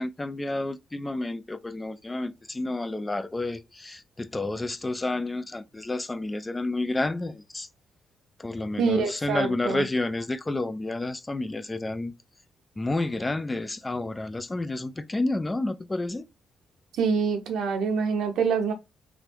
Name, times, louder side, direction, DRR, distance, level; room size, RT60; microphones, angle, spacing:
voice 1, 0.0-7.7 8.4-12.1 12.8-16.3, left 2 dB, 20° left, 0.3 m, -30 dB
voice 2, 8.8-9.8 17.0-18.7, right 5 dB, 75° right, 0.7 m, -25 dB
3.1 x 2.5 x 3.2 m
cardioid pair, 90°, 0 cm